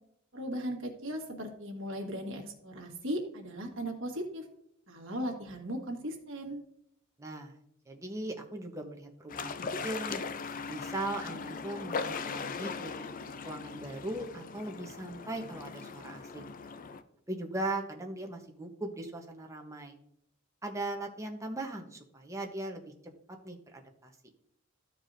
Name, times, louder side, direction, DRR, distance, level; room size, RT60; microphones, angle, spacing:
voice 1, 0.3-4.4 4.9-6.6, equal, 65° right, 1 dB, 1.5 m, -37 dB
voice 2, 7.2-7.6 7.9-10.2 10.7-16.5 17.3-20.0 20.6-22.9 23.4-24.1, right 2 dB, 15° right, 2 dB, 0.9 m, -39 dB
sound 1, 9.3-17.0, left 5 dB, 40° left, 0.4 m, -39 dB
14.0 x 4.7 x 2.6 m, 0.73 s
head